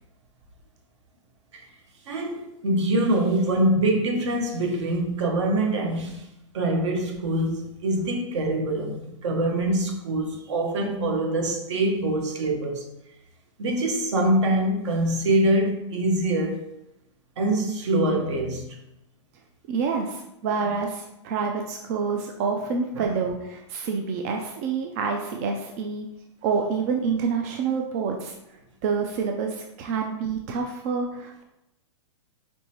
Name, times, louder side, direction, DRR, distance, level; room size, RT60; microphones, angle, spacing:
voice 1, 2.1-6.3 6.5-12.9 13.6-16.6 17.4-18.8 22.9-23.0, right 1 dB, 65° right, 2 dB, 1.1 m, -24 dB
voice 2, 19.7-26.1 26.4-28.3 28.8-31.4, right 5 dB, 30° right, 2 dB, 0.3 m, -27 dB
5.2 x 3.1 x 2.9 m, 0.85 s
hypercardioid pair, 160°, 16 cm